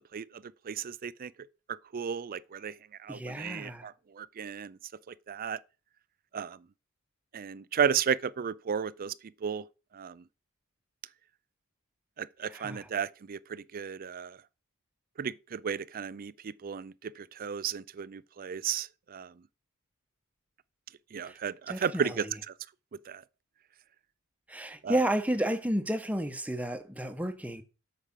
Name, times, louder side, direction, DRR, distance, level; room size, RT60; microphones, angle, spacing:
voice 1, 0.7-1.3 1.9-2.7 3.0-4.8 5.1-5.6 6.3-6.6 7.3-9.1 9.4-9.6 9.9-10.1 12.2-14.4 15.2-19.3 21.1-22.2 23.1-23.2 24.8-25.0, right 7 dB, 40° right, 0.4 m, -34 dB
voice 2, 3.1-3.9 12.4-12.9 21.2-21.4 21.7-22.3 24.5-27.6, right 1 dB, 5° right, 1.0 m, -32 dB
8.2 x 4.9 x 7.4 m
head